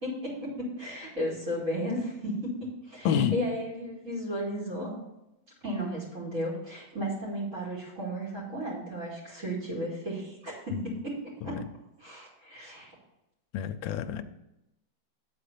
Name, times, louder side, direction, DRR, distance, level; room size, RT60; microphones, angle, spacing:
voice 1, 0.0-4.9 5.6-11.6 12.0-12.9, equal, 45° right, -5 dB, 2.7 m, -34 dB
voice 2, 3.0-3.4 10.7-10.8 11.4-11.6 13.5-14.2, left 8 dB, 85° left, 9 dB, 1.4 m, -28 dB
8.9 x 4.3 x 6.7 m, 0.90 s
omnidirectional pair, 2.0 m